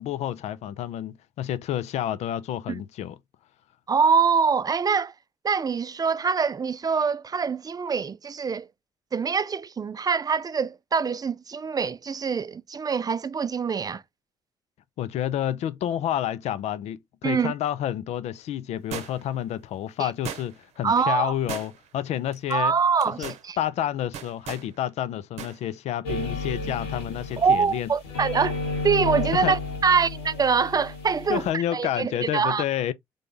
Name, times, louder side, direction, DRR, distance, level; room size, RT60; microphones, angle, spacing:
voice 1, 0.0-3.2 15.0-22.7 23.1-27.9 29.3-29.6 31.3-32.9, left 11 dB, 60° left, 0.5 m, -29 dB
voice 2, 3.9-5.1 5.4-8.7 9.1-14.0 17.2-17.5 20.0-20.1 20.8-21.3 22.5-23.6 27.4-28.6 28.8-32.6, right 5 dB, 30° right, 0.5 m, -24 dB
sound 1, 18.9-19.4 20.2-20.8 21.5-22.0 22.3-22.5 23.0-23.4 24.1-24.7 25.4-25.6 25.9-26.0, right 8 dB, 60° right, 0.8 m, -37 dB
sound 2, 26.0-27.7 28.0-31.5, left 3 dB, 80° left, 1.6 m, -32 dB
3.8 x 3.5 x 3.6 m
figure-of-eight pair, 40°, 13 cm